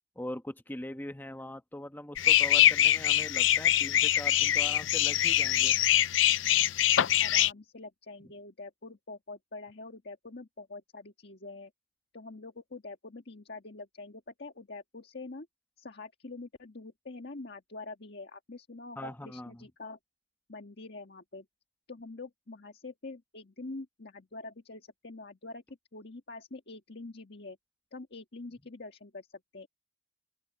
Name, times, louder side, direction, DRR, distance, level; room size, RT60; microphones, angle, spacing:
voice 1, 0.2-5.8 19.0-19.7, left 1 dB, 10° left, 1.1 m, -41 dB
sound 1, 2.2-7.5, left 12 dB, 85° left, 0.5 m, -24 dB
voice 2, 7.2-11.7 12.1-15.5 15.8-20.0 20.5-21.4 21.9-25.6 25.9-27.6 27.9-29.7, left 3 dB, 60° left, 1.7 m, -45 dB
open air
head